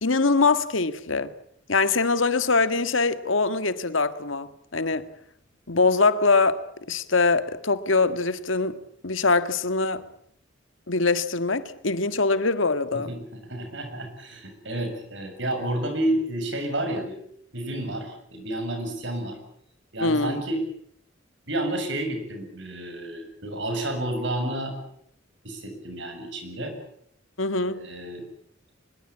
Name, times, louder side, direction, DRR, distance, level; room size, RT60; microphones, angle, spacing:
voice 1, 0.0-1.3 1.7-5.1 5.7-8.8 9.0-10.0 10.9-13.1 20.0-20.4 27.4-27.8, left 3 dB, 85° left, 1.7 m, -23 dB
voice 2, 12.9-17.2 17.5-19.4 19.9-20.6 21.5-24.7 25.4-26.8 27.6-28.3, right 1 dB, 65° right, 7.2 m, -30 dB
24.0 x 21.5 x 8.6 m
head